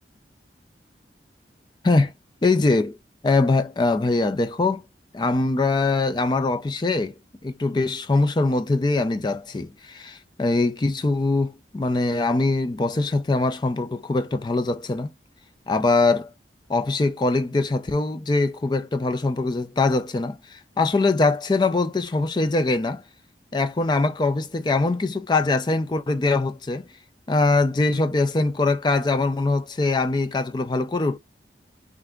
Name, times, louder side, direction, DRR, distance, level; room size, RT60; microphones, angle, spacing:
voice 1, 2.4-3.0 3.2-4.8 5.1-7.1 7.4-15.1 15.7-16.3 16.7-23.0 23.5-26.9 27.3-31.2, left 3 dB, 25° left, 0.4 m, -22 dB
3.4 x 2.5 x 3.6 m
head